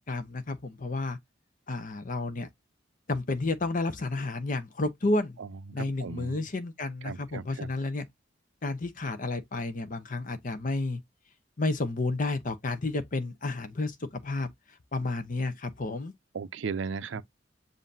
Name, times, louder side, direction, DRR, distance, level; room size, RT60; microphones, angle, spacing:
voice 1, 0.1-1.2 1.7-2.5 3.1-5.4 5.7-8.1 8.6-11.0 11.6-14.5 14.9-16.1, left 2 dB, 45° left, 0.7 m, -31 dB
voice 2, 5.4-6.5 7.0-7.7 16.3-17.2, right 5 dB, 75° right, 0.5 m, -36 dB
7.3 x 2.6 x 2.6 m
head